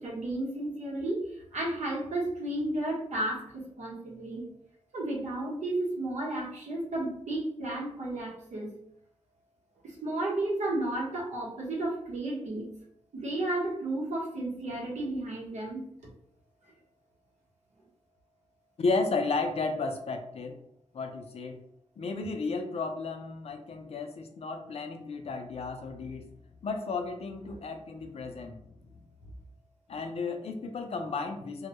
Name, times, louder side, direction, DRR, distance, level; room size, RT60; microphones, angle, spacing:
voice 1, 0.0-4.4 4.9-8.7 9.8-12.7 13.1-15.8 27.5-27.6, right 1 dB, 85° right, -3 dB, 0.9 m, -33 dB
voice 2, 18.8-20.5 20.9-21.6 22.0-26.3 26.6-28.8 29.9-31.7, left 3 dB, 60° left, 5 dB, 0.4 m, -33 dB
2.2 x 2.0 x 2.8 m, 0.71 s
cardioid pair, 70°, 12 cm